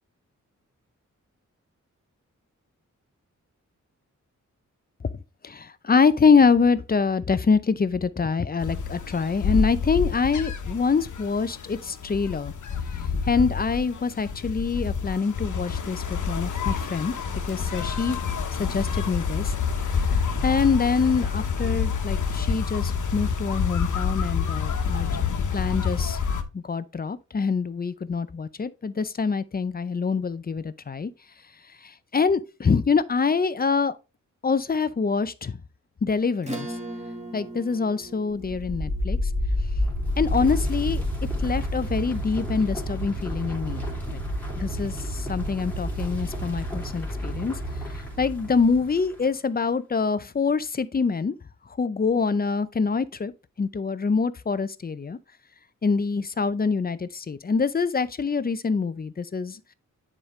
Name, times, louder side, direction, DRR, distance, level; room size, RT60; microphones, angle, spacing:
voice 1, 5.4-12.5 13.3-17.2 17.5-18.2 18.6-19.5 20.1-25.2 25.5-26.2 26.5-31.1 31.8-33.9 34.4-35.6 36.0-36.7 37.3-39.2 40.2-41.0 41.4-43.8 44.1-44.2 44.6-47.6 48.2-51.3 51.8-53.3 53.6-55.2 55.8-59.6, left 5 dB, 30° left, 0.5 m, -25 dB
sound 1, 8.6-26.4, left 6 dB, 80° left, 1.2 m, -28 dB
Acoustic guitar / Strum, 36.4-41.3, right 1 dB, 20° right, 2.0 m, -40 dB
sound 2, 38.3-49.2, equal, 5° left, 2.7 m, -29 dB
9.8 x 5.1 x 3.2 m
wide cardioid pair, 105°, 30 cm